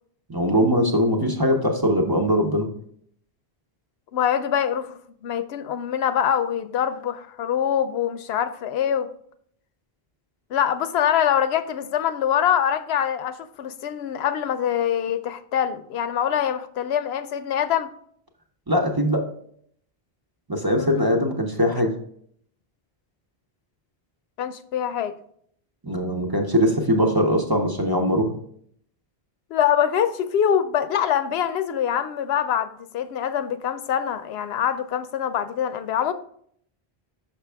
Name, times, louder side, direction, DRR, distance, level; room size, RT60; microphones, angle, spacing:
voice 1, 0.3-2.7 18.7-19.2 20.5-21.9 25.8-28.4, equal, 25° right, 2 dB, 0.7 m, -21 dB
voice 2, 4.1-9.1 10.5-17.9 20.8-21.0 24.4-25.1 29.5-36.1, left 9 dB, 85° left, 11 dB, 0.8 m, -24 dB
5.9 x 5.7 x 3.4 m, 0.64 s
omnidirectional pair, 1.0 m